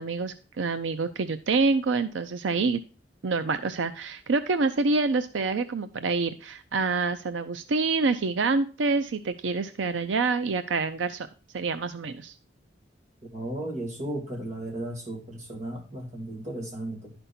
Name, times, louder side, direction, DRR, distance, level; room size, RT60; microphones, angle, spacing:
voice 1, 0.0-2.8 3.2-11.3 11.5-12.3, right 4 dB, 90° right, 10 dB, 0.5 m, -27 dB
voice 2, 13.3-17.1, right 1 dB, 40° right, 1 dB, 2.2 m, -35 dB
11.0 x 5.3 x 4.3 m, 0.36 s
head